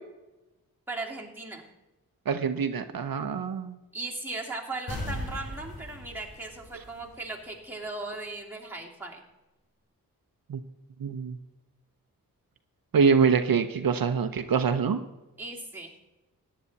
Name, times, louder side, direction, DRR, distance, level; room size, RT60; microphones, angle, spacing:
voice 1, 0.9-1.6 3.9-9.2 15.4-15.9, right 2 dB, 5° right, -2 dB, 2.8 m, -37 dB
voice 2, 2.3-3.8 10.5-10.6 11.0-11.4 12.9-15.0, right 6 dB, 75° right, 8 dB, 0.9 m, -25 dB
sound 1, 4.9-7.5 7.8-7.9, left 1 dB, 85° left, 5.0 m, -38 dB
14.5 x 10.0 x 4.1 m, 1.0 s
wide cardioid pair, 80°, 35 cm